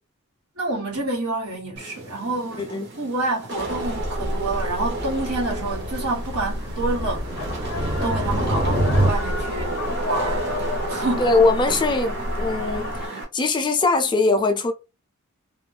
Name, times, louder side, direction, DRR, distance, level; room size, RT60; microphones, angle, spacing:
voice 1, 0.6-7.5 8.0-9.8 10.0-10.6 10.9-11.3, right 2 dB, 85° right, 1.4 m, -28 dB
Wind / Rain, 1.8-13.2, right 2 dB, 50° right, 0.9 m, -33 dB
sound 1, 3.5-9.1, right 1 dB, 20° right, 0.6 m, -27 dB
ezan-distant, 3.7-13.1, left 1 dB, 60° left, 0.6 m, -30 dB
voice 2, 11.2-12.9 13.3-14.7, left 3 dB, 20° left, 0.3 m, -21 dB
2.4 x 2.1 x 3.2 m
head